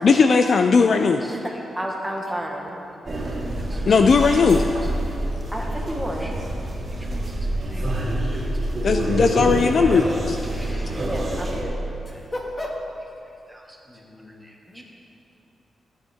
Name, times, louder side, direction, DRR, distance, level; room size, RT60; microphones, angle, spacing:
voice 1, 0.0-1.2 3.9-4.6 8.8-10.4, left 5 dB, 55° left, 6 dB, 0.4 m, -17 dB
voice 2, 1.2-2.8 3.7-3.8 5.5-6.4 7.7-7.8 8.3-8.5 9.8-10.1 10.5-11.8 13.5-13.6 14.7-14.8, equal, 5° right, -1 dB, 1.3 m, -32 dB
sound 1, 3.1-11.6, right 1 dB, 40° right, 2.3 m, -27 dB
voice 3, 12.0-12.9 13.8-14.8, left 1 dB, 25° left, -2 dB, 1.8 m, -35 dB
15.5 x 9.2 x 3.6 m, 2.8 s
wide cardioid pair, 120°, 0 cm